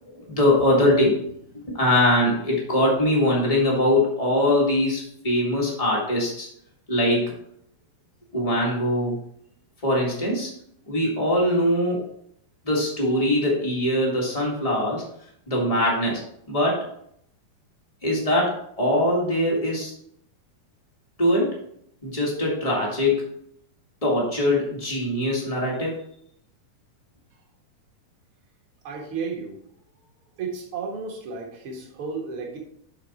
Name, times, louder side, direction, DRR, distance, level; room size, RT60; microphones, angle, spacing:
voice 1, 0.0-1.1 1.8-6.5 6.9-7.3 8.3-9.2 9.8-10.5 10.9-12.0 12.6-15.0 15.5-16.2 16.5-16.8 18.0-19.9 21.2-21.5 22.0-23.2 24.0-26.0, left 1 dB, 30° left, -3 dB, 0.6 m, -22 dB
voice 2, 28.8-29.6 30.4-32.6, right 5 dB, 50° right, 0 dB, 1.8 m, -33 dB
11.0 x 4.3 x 4.2 m, 0.70 s
omnidirectional pair, 4.3 m